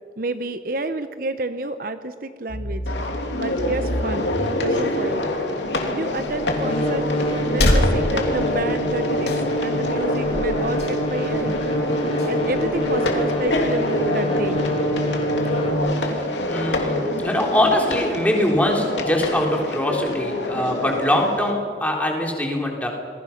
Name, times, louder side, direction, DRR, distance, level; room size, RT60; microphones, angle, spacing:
voice 1, 0.2-2.8 3.3-4.3 4.6-5.2 5.9-7.1 7.5-11.6 12.2-14.6, right 2 dB, 50° right, 10 dB, 0.9 m, -29 dB
sound 1, 2.5-15.8, equal, 35° left, 4.2 m, -27 dB
sound 2, 2.9-21.5, left 1 dB, 85° left, 2.9 m, -26 dB
sound 3, 6.1-13.6, left 1 dB, 65° left, 3.5 m, -28 dB
voice 2, 15.8-22.9, left 1 dB, 10° left, 0 dB, 3.6 m, -23 dB
27.5 x 21.5 x 6.0 m, 2.3 s
head